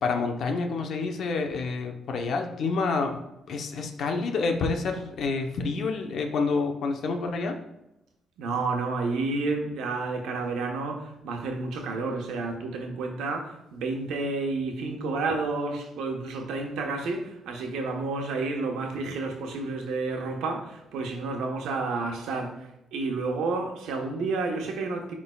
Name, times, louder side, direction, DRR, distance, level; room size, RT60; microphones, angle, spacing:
voice 1, 0.0-3.2 3.5-7.6, left 4 dB, 65° left, 4 dB, 0.8 m, -28 dB
voice 2, 8.4-25.1, right 3 dB, 85° right, 2 dB, 1.1 m, -30 dB
10.5 x 3.7 x 2.4 m, 0.90 s
cardioid pair, 90°, 0 cm